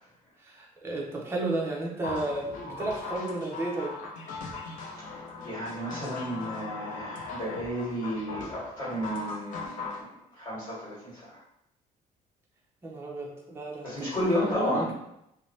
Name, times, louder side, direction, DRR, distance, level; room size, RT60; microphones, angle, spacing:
voice 1, 0.4-4.0 12.8-14.9, right 2 dB, 15° right, -2 dB, 0.5 m, -33 dB
sound 1, 2.0-10.0, left 3 dB, 65° left, 0.5 m, -39 dB
voice 2, 4.8-11.3 13.8-14.9, equal, 25° left, -11 dB, 1.5 m, -33 dB
2.6 x 2.0 x 3.1 m, 0.80 s
cardioid pair, 160°, 15 cm